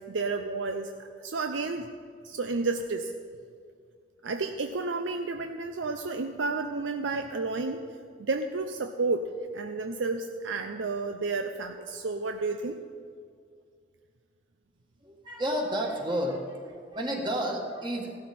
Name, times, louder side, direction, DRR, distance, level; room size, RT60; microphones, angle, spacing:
voice 1, 0.1-1.9 2.2-3.1 4.2-7.8 8.2-12.8, right 3 dB, 85° right, 6 dB, 0.6 m, -31 dB
voice 2, 15.0-18.2, equal, 25° right, 0 dB, 1.8 m, -31 dB
16.5 x 12.5 x 4.3 m, 2.2 s
head